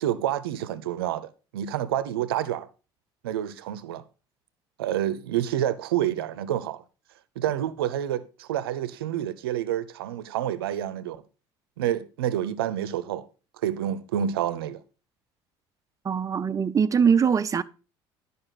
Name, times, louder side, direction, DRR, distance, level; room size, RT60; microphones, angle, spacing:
voice 1, 0.0-2.7 3.2-4.0 4.8-6.8 7.4-11.2 11.8-13.3 13.6-14.8, right 11 dB, 85° right, 0.7 m, -28 dB
voice 2, 16.0-17.6, right 6 dB, 25° right, 0.6 m, -22 dB
11.0 x 5.4 x 4.2 m
hypercardioid pair, 70°, 12 cm